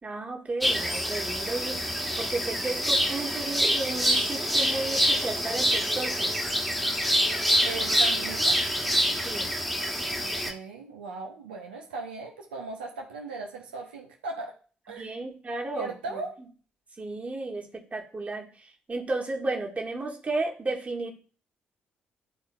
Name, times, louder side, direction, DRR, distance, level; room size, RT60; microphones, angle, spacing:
voice 1, 0.0-1.8 2.1-6.3 9.2-9.5 15.0-16.2 17.0-21.1, right 2 dB, 25° right, 1 dB, 1.5 m, -33 dB
sound 1, 0.6-10.5, equal, ahead, 1.4 m, -26 dB
voice 2, 7.6-8.6 10.2-14.5 14.9-15.1 15.7-16.4, right 3 dB, 75° right, 1 dB, 0.8 m, -38 dB
11.0 x 4.3 x 2.3 m, 0.39 s
figure-of-eight pair, 40°, 5 cm